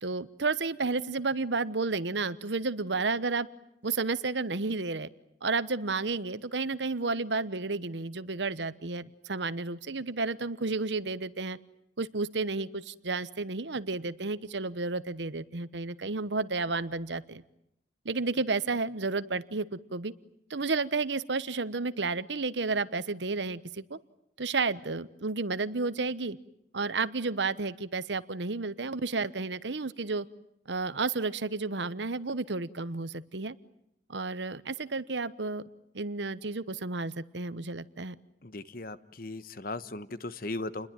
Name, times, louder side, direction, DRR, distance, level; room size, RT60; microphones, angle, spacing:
voice 1, 0.0-3.5 3.8-5.1 5.4-11.6 12.0-17.4 18.0-20.1 20.5-24.0 24.4-26.4 26.7-30.2 30.7-33.5 34.1-35.6 35.9-38.2, right 3 dB, 80° right, 15 dB, 1.1 m, -31 dB
voice 2, 38.4-40.9, left 2 dB, 50° left, 14 dB, 1.1 m, -37 dB
29.5 x 21.5 x 9.1 m, 0.80 s
head